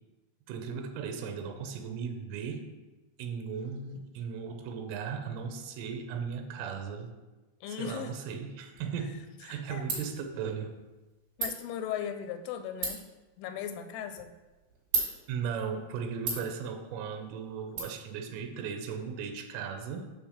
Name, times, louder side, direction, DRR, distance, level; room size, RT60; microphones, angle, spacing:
voice 1, 0.5-2.7 3.2-7.2 7.7-10.8 15.3-20.1, right 6 dB, 90° right, 6 dB, 3.3 m, -37 dB
voice 2, 7.6-8.2 9.0-9.9 11.4-13.0 13.4-14.3, left 8 dB, 85° left, 9 dB, 3.0 m, -38 dB
Ratchet pawl, 8.7-17.8, right 4 dB, 55° right, 3.9 m, -39 dB
8.7 x 3.1 x 6.4 m, 1.1 s
omnidirectional pair, 5.5 m